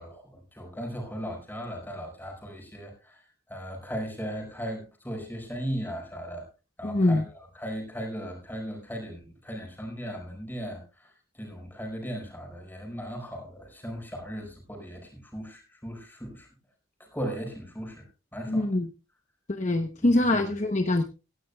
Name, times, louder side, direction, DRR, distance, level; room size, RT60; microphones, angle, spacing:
voice 1, 0.0-6.5 6.8-7.2 7.5-16.5 17.0-18.1 18.3-18.7 20.2-20.4, equal, 10° left, 0 dB, 5.1 m, -37 dB
voice 2, 6.8-7.2 18.5-18.9 19.5-21.0, left 2 dB, 35° left, 6 dB, 0.8 m, -24 dB
16.5 x 15.0 x 2.3 m, 0.31 s
head